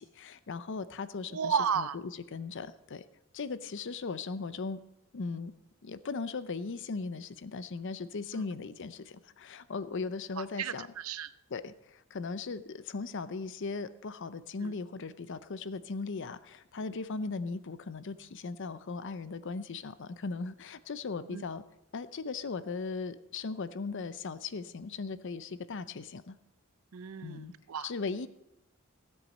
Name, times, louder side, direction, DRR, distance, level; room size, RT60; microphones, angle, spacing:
voice 1, 0.0-1.9 2.3-3.0 3.3-4.8 5.1-5.5 5.8-10.9 11.5-21.6 21.9-26.4 27.2-27.5 27.8-28.3, left 4 dB, 60° left, 14 dB, 0.6 m, -38 dB
voice 2, 1.3-2.0 10.4-11.3 14.6-14.7 21.3-21.4 26.9-27.9, right 7 dB, 80° right, 15 dB, 0.5 m, -33 dB
16.0 x 8.0 x 5.3 m, 0.84 s
head